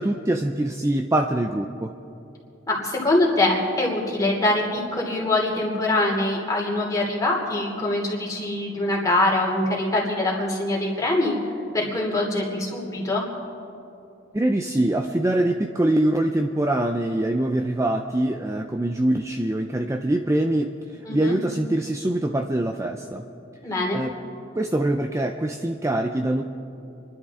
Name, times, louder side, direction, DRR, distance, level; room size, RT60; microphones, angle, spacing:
voice 1, 0.0-1.9 14.3-23.2 23.9-24.1 24.6-26.4, right 1 dB, 15° right, 4 dB, 0.5 m, -24 dB
voice 2, 2.7-11.3 11.7-13.2 21.1-21.4 23.6-24.0, left 2 dB, 15° left, -2 dB, 2.8 m, -23 dB
29.0 x 11.5 x 3.6 m, 2.8 s
head